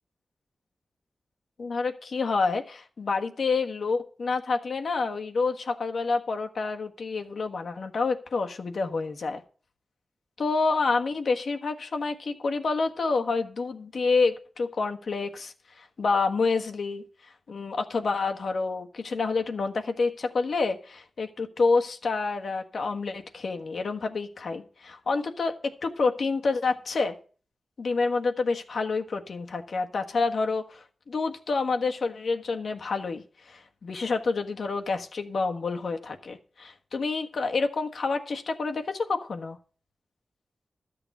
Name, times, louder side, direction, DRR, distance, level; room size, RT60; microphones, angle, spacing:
voice 1, 1.6-9.4 10.4-17.0 17.5-27.1 27.8-39.6, left 4 dB, 75° left, 5 dB, 1.4 m, -28 dB
13.0 x 7.0 x 5.4 m, 0.41 s
cardioid pair, 60°, 0 cm